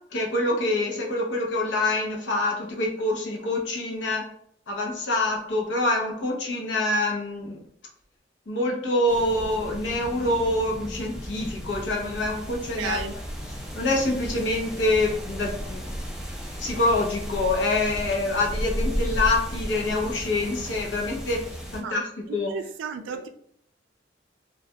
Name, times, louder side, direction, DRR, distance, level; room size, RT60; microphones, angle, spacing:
voice 1, 0.1-4.3 4.7-7.6 8.5-13.2 13.7-15.8 16.6-22.6, left 2 dB, 75° left, 0 dB, 0.6 m, -26 dB
sound 1, 9.1-21.8, equal, ahead, 0.4 m, -34 dB
voice 2, 12.8-13.1 21.8-22.0 22.3-23.3, right 6 dB, 90° right, 7 dB, 0.3 m, -33 dB
2.3 x 2.1 x 2.7 m, 0.66 s
head